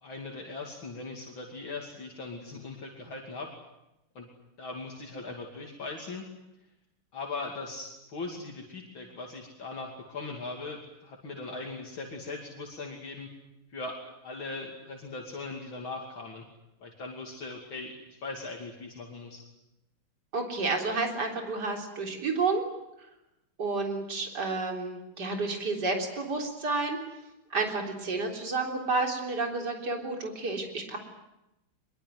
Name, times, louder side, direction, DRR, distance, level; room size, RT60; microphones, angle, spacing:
voice 1, 0.0-3.5 4.1-4.3 4.6-6.3 7.1-13.3 13.7-16.4 16.8-19.4, left 3 dB, 65° left, 0 dB, 3.4 m, -39 dB
voice 2, 20.3-22.6 23.6-27.0 27.5-31.0, right 3 dB, 50° right, 2 dB, 4.3 m, -30 dB
23.5 x 22.5 x 9.4 m, 0.90 s
omnidirectional pair, 2.4 m